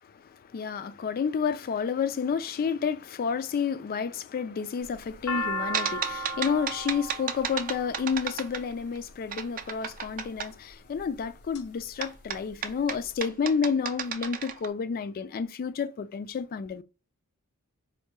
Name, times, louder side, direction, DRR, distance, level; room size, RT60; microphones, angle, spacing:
voice 1, 0.2-16.8, left 6 dB, 40° left, 0.3 m, -30 dB
sound 1, 4.8-9.1 9.9-10.4 11.0-11.6 12.0-12.1 12.2-13.1, equal, 75° left, 0.6 m, -35 dB
sound 2, 5.7-9.0 9.3-10.5 12.0-14.7, right 7 dB, 40° right, 0.4 m, -33 dB
4.4 x 2.2 x 2.9 m
head